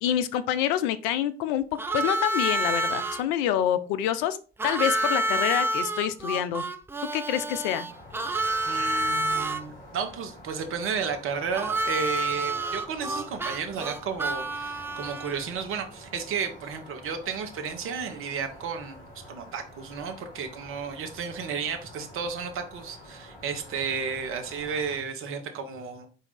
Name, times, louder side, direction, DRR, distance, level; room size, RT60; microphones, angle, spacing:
voice 1, 0.0-1.6 1.9-4.4 4.6-6.6 7.1-7.9, left 11 dB, 60° left, 13 dB, 0.5 m, -26 dB
Harmonica, 1.8-3.2 4.6-9.6 11.5-15.5, right 2 dB, 10° right, 0.3 m, -28 dB
sound 1, 7.9-25.0, left 1 dB, 15° left, 2.4 m, -48 dB
voice 2, 8.7-26.1, right 6 dB, 45° right, 6 dB, 0.9 m, -33 dB
4.4 x 2.7 x 4.0 m, 0.37 s
figure-of-eight pair, 60°, 30 cm